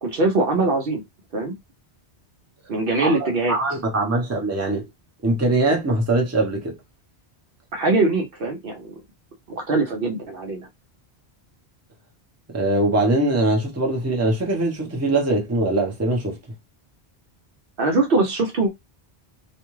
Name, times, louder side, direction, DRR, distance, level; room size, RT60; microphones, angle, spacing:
voice 1, 0.0-1.0 1.3-1.5 2.7-3.6 7.7-9.0 9.5-10.7 17.8-18.7, right 3 dB, 60° right, 0.8 m, -22 dB
voice 2, 3.0-4.9 5.2-6.8 12.5-16.4, right 2 dB, 15° right, 0.7 m, -22 dB
2.5 x 2.3 x 3.0 m
omnidirectional pair, 1.1 m